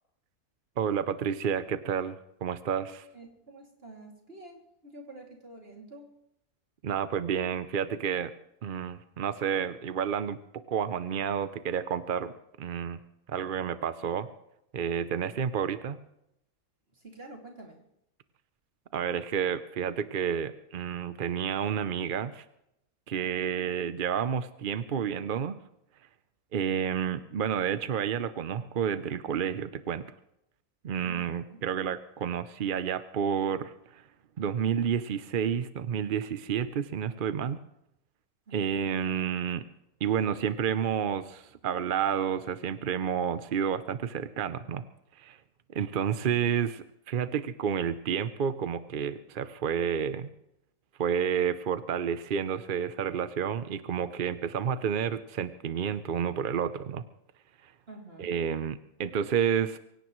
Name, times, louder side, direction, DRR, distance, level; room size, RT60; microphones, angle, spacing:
voice 1, 0.8-3.0 6.8-8.3 8.6-10.4 10.7-12.3 12.6-13.0 13.3-14.3 14.7-16.0 18.9-22.4 23.1-25.6 26.5-30.1 30.8-34.0 34.4-37.6 38.5-39.6 40.0-44.8 45.2-45.4 45.7-50.3 51.0-57.0 57.6-57.7 58.2-59.8, right 8 dB, 55° right, 12 dB, 0.6 m, -30 dB
voice 2, 2.8-6.2 16.9-17.8 23.1-23.7 31.0-31.6 38.5-38.9 57.9-58.4, right 2 dB, 40° right, 0 dB, 2.8 m, -49 dB
23.5 x 17.0 x 3.1 m, 0.82 s
omnidirectional pair, 1.6 m